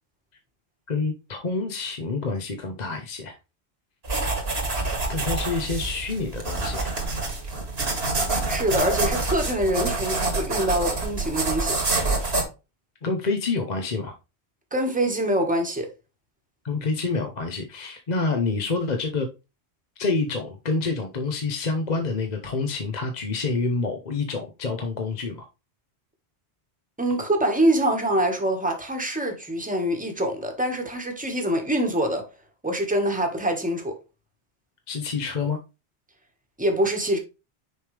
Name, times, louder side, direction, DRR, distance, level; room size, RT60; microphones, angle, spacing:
voice 1, 0.9-3.4 5.1-7.0 13.0-14.1 16.6-19.3 20.0-25.5 34.9-35.6, left 3 dB, 45° left, 0.9 m, -27 dB
sound 1, 4.0-12.4, right 2 dB, 70° right, 2.1 m, -27 dB
voice 2, 8.5-11.8 14.7-15.9 27.0-32.3 32.6-34.0 36.6-37.2, right 1 dB, 10° right, 1.3 m, -24 dB
6.5 x 5.1 x 3.2 m
omnidirectional pair, 1.1 m